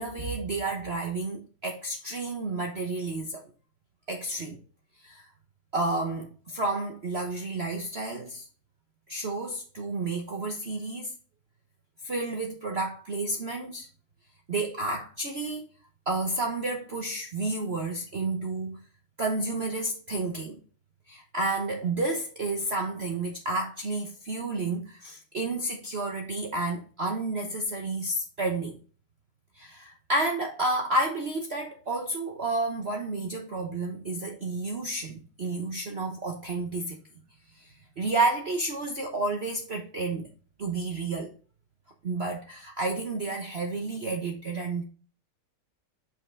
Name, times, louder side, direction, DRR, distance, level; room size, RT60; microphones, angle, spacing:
voice 1, 0.0-3.4 4.1-4.6 5.0-5.3 5.7-8.5 9.1-11.1 12.0-13.9 14.5-15.7 16.1-18.8 19.2-20.6 21.1-28.8 29.6-37.0 37.5-40.3 40.6-41.3 42.0-44.8, right 2 dB, 40° right, 1.0 m, -31 dB
7.0 x 5.7 x 3.3 m
omnidirectional pair, 2.0 m